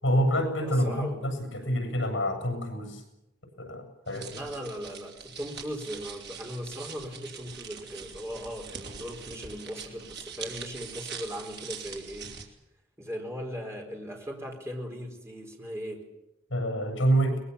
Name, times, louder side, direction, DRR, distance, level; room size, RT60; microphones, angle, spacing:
voice 1, 0.0-3.0 3.6-4.4 16.5-17.4, equal, 70° left, 5 dB, 7.6 m, -27 dB
voice 2, 0.6-1.2 4.3-12.4 13.0-16.1, equal, 15° right, 1 dB, 4.2 m, -38 dB
sound 1, 4.1-12.5, right 6 dB, 55° right, 3.3 m, -43 dB
22.0 x 21.5 x 7.0 m, 0.91 s
head